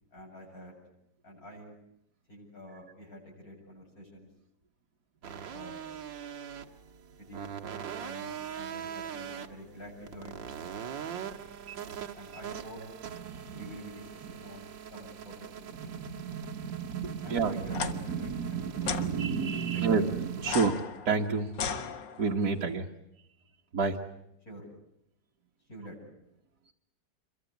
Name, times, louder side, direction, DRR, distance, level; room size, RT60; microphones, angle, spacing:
voice 1, 0.1-0.7 1.2-1.8 2.3-4.3 5.5-5.8 7.1-7.6 8.0-11.5 12.1-12.8 13.5-15.9 17.2-19.0 19.7-20.0 24.4-24.6 25.7-26.0, equal, 50° left, -1 dB, 8.5 m, -48 dB
sound 1, 5.2-20.5, right 8 dB, 80° right, 2.1 m, -43 dB
voice 2, 13.2-13.7 15.8-20.7 21.1-21.5 22.2-22.9 23.7-24.0, right 5 dB, 55° right, -1 dB, 2.0 m, -30 dB
sound 2, 17.7-17.9 18.8-19.1 20.4-22.4, left 6 dB, 70° left, 2.0 m, -35 dB
27.5 x 23.0 x 8.3 m, 0.79 s
omnidirectional pair, 2.0 m